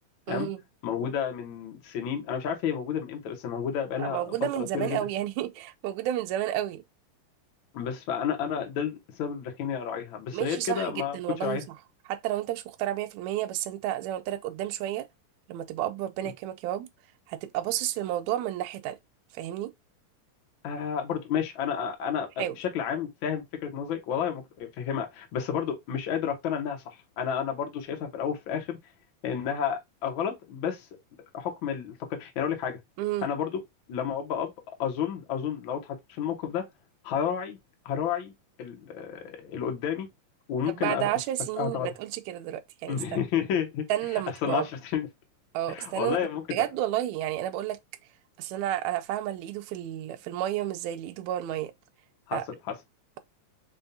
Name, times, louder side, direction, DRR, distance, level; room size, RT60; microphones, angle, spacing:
voice 1, 0.3-0.6 4.0-6.8 10.3-11.6 12.1-15.1 15.5-16.9 17.3-19.0 19.3-19.7 22.4-22.6 33.0-33.3 40.7-43.2 43.9-44.7 45.5-46.2 46.5-47.8 48.4-51.7 52.3-52.4, right 13 dB, 80° right, 1.7 m, -31 dB
voice 2, 0.8-5.0 7.7-11.6 20.6-28.8 29.2-30.9 31.3-32.8 33.2-33.6 33.9-34.5 34.8-36.6 37.0-37.6 37.8-38.3 38.6-40.1 40.5-41.1 41.6-41.9 42.9-43.9 44.4-45.1 45.7-46.4 52.3-52.8, left 8 dB, 80° left, 1.1 m, -31 dB
5.3 x 2.2 x 2.6 m
omnidirectional pair, 3.8 m